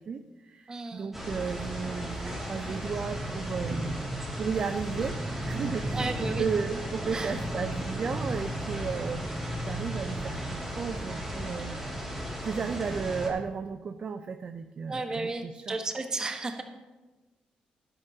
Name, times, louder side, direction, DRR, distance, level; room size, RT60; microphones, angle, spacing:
voice 1, 0.0-4.0 4.4-9.3 9.5-11.8 12.4-15.8, right 5 dB, 45° right, 8 dB, 0.4 m, -34 dB
voice 2, 0.7-1.2 5.9-6.5 7.1-7.3 14.9-16.6, right 3 dB, 25° right, 5 dB, 1.1 m, -33 dB
sound 1, 1.1-13.3, equal, 10° right, 2.3 m, -34 dB
12.0 x 11.0 x 2.8 m, 1.2 s
cardioid pair, 115°, 3 cm